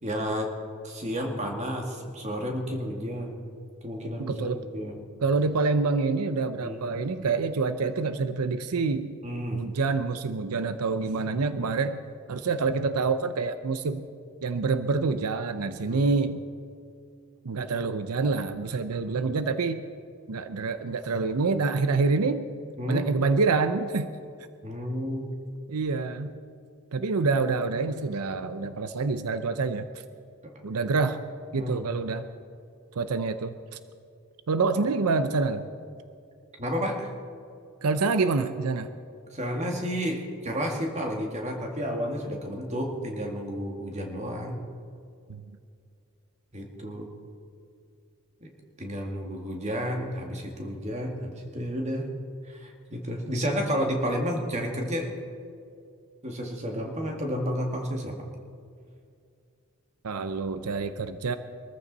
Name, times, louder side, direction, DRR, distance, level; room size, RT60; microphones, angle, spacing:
voice 1, 0.0-0.5 0.8-3.4 3.8-5.0 6.6-6.8 9.2-9.6 15.8-16.1 19.0-19.3 22.8-23.1 24.6-25.3 30.4-30.5 31.5-31.8 36.6-37.1 39.3-44.6 46.5-47.1 48.4-48.5 48.8-52.1 52.5-55.1 56.2-58.2, equal, 30° right, 2 dB, 2.0 m, -31 dB
voice 2, 4.2-4.6 5.2-9.2 9.5-12.0 12.3-14.0 14.4-16.4 17.4-19.9 20.3-22.5 22.9-24.1 25.7-26.3 26.9-29.9 30.6-31.2 31.5-32.3 33.0-33.5 34.5-35.6 37.8-38.9 45.3-45.4 60.0-61.4, right 4 dB, 90° right, 10 dB, 0.6 m, -27 dB
22.5 x 14.0 x 4.1 m, 2.4 s
head